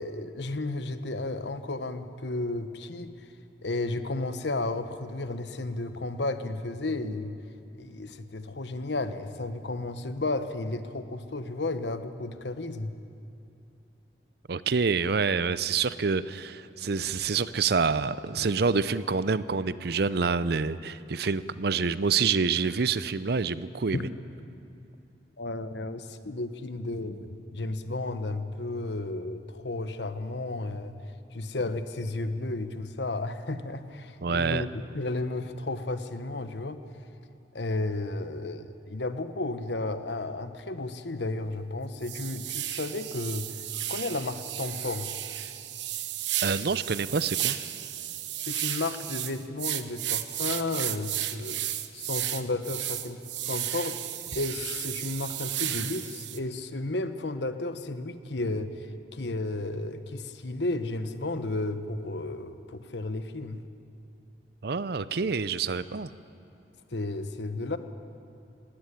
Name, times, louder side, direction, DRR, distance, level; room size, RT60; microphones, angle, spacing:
voice 1, 0.0-3.1 3.6-7.3 7.8-12.9 23.9-24.0 25.4-31.0 31.3-36.8 37.5-43.6 43.9-45.1 48.4-51.6 51.9-53.2 53.5-54.0 54.3-63.6 66.9-67.8, left 2 dB, 70° left, 10 dB, 1.1 m, -33 dB
voice 2, 14.5-24.1 34.2-34.6 46.4-47.6 64.6-66.1, right 5 dB, 60° right, 16 dB, 0.6 m, -27 dB
sound 1, 41.4-41.6 42.0-56.4, right 13 dB, 80° right, 1.0 m, -33 dB
18.5 x 16.5 x 10.0 m, 2.8 s
head